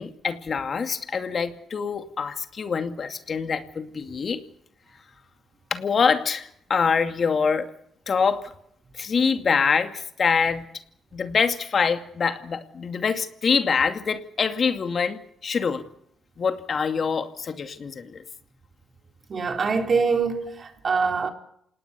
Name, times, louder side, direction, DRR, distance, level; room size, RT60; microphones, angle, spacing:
voice 1, 0.0-4.4 5.7-7.7 8.1-8.5 9.0-10.6 11.1-15.8 16.4-18.2, left 5 dB, 50° left, 2.4 m, -25 dB
voice 2, 19.3-21.3, right 5 dB, 45° right, 3.7 m, -24 dB
27.0 x 19.0 x 7.0 m
cardioid pair, 80°, 0 cm